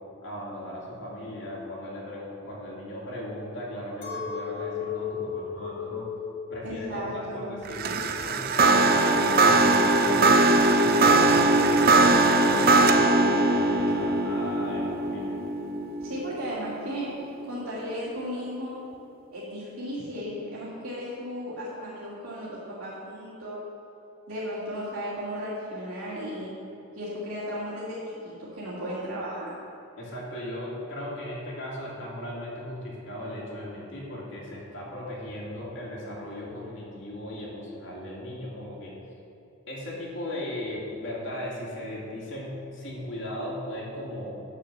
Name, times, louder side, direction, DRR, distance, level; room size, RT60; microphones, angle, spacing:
voice 1, 0.2-6.1 6.5-10.2 10.7-15.4 30.0-38.9 39.7-44.4, left 1 dB, 55° left, -5 dB, 2.5 m, -37 dB
Chink clink, 4.0-9.5, left 7 dB, 40° left, 1.9 m, -36 dB
voice 2, 6.6-7.5 16.0-17.1 17.4-18.8 19.3-23.6 24.3-26.5 27.0-29.6, equal, 80° right, -10 dB, 2.2 m, -35 dB
sound 1, 7.7-17.0, right 2 dB, 45° right, 0.5 m, -21 dB
9.1 x 6.7 x 6.8 m, 2.9 s
head